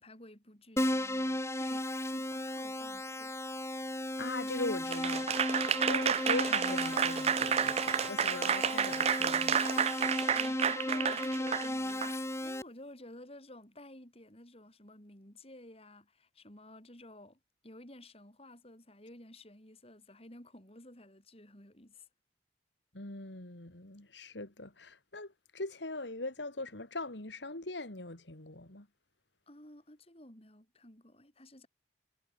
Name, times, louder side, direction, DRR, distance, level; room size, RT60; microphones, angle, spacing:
voice 1, 0.0-3.3 10.2-22.1 29.5-31.7, left 1 dB, 35° left, 7.3 m, -52 dB
Keyboard (musical), 0.8-12.6, left 1 dB, 15° left, 2.5 m, -35 dB
voice 2, 4.2-5.3 5.8-9.6 22.9-28.9, left 2 dB, 80° left, 3.1 m, -40 dB
Applause / Crowd, 4.9-12.1, right 8 dB, 35° right, 0.4 m, -30 dB
head